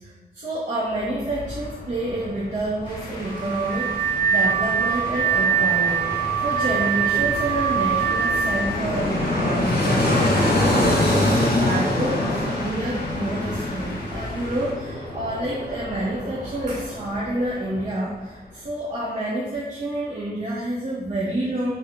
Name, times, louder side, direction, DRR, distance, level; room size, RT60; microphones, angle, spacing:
voice 1, 0.0-6.0 6.4-21.8, right 1 dB, 50° right, -10 dB, 2.5 m, -28 dB
Fixed-wing aircraft airplane, 0.9-17.9 18.2-18.3, left 1 dB, 70° left, 2.1 m, -26 dB
sound 1, 2.8-14.7, left 2 dB, 30° left, 2.2 m, -40 dB
Car / Alarm, 3.3-8.8, right 8 dB, 65° right, 0.7 m, -23 dB
9.0 x 5.1 x 3.8 m, 1.2 s
wide cardioid pair, 155°, 16 cm